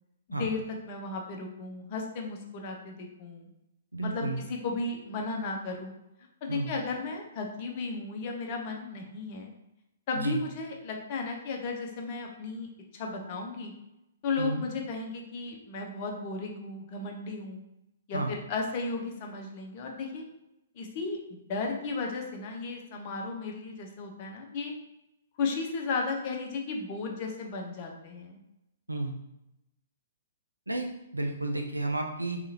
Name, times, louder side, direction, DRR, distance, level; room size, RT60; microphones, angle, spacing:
voice 1, 0.3-3.5 4.0-5.9 6.4-9.5 10.1-13.7 14.2-17.6 18.1-20.2 20.7-21.2 21.5-24.7 25.4-28.4, left 3 dB, 40° left, 1 dB, 0.5 m, -34 dB
voice 2, 3.9-4.4 6.5-6.7 10.2-10.4 14.4-14.6 18.1-18.3 28.9-29.1 30.7-32.4, right 2 dB, 90° right, 4 dB, 0.3 m, -32 dB
2.8 x 2.4 x 2.7 m, 0.89 s
figure-of-eight pair, 120°, 0 cm